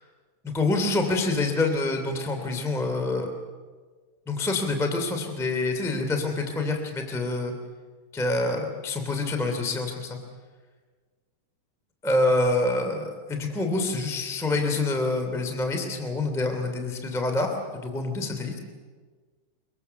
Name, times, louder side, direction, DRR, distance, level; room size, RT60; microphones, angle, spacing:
voice 1, 0.4-3.3 4.2-7.5 8.1-10.2 12.0-18.6, left 2 dB, ahead, 4 dB, 0.9 m, -26 dB
24.0 x 22.5 x 7.0 m, 1.5 s
omnidirectional pair, 5.6 m